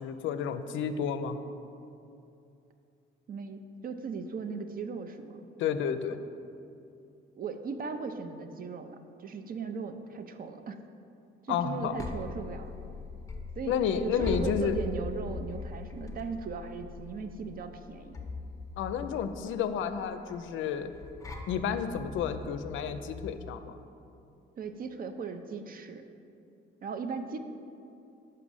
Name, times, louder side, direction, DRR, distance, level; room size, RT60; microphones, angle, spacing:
voice 1, 0.0-1.4 5.6-6.2 11.5-11.9 13.7-14.7 18.8-20.9 21.5-23.8, left 7 dB, 80° left, 10 dB, 0.4 m, -31 dB
voice 2, 3.3-5.4 7.4-10.8 11.4-12.7 13.6-18.2 24.6-26.1 26.8-27.4, right 5 dB, 45° right, 8 dB, 0.5 m, -38 dB
sound 1, 11.6-23.5, left 3 dB, 15° left, 0.7 m, -41 dB
5.5 x 4.9 x 5.4 m, 2.6 s
cardioid pair, 90°, 20 cm